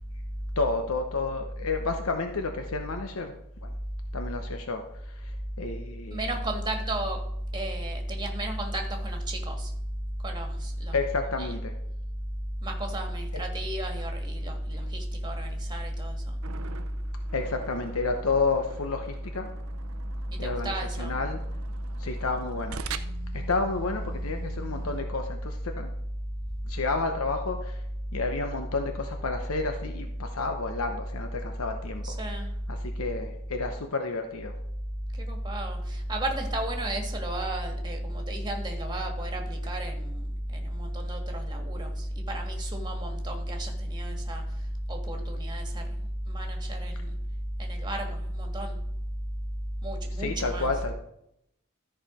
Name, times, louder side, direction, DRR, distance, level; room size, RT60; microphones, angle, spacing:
voice 1, 0.6-3.3 3.6-3.7 4.1-6.2 10.9-11.7 13.3-13.4 17.3-19.5 20.4-21.4 22.0-22.8 23.3-25.9 26.6-27.8 28.1-32.2 32.7-34.6 50.2-50.9, left 3 dB, 90° left, 5 dB, 0.9 m, -31 dB
voice 2, 6.1-7.2 7.5-9.7 10.2-11.0 11.3-11.6 12.6-16.4 20.4-21.2 32.0-32.5 35.2-40.2 40.5-44.4 44.9-47.2 47.6-48.8 49.8-50.7, right 1 dB, 20° right, 3 dB, 1.6 m, -32 dB
sound 1, 16.4-25.0, right 6 dB, 80° right, 0.6 m, -44 dB
13.5 x 4.9 x 5.0 m, 0.77 s
head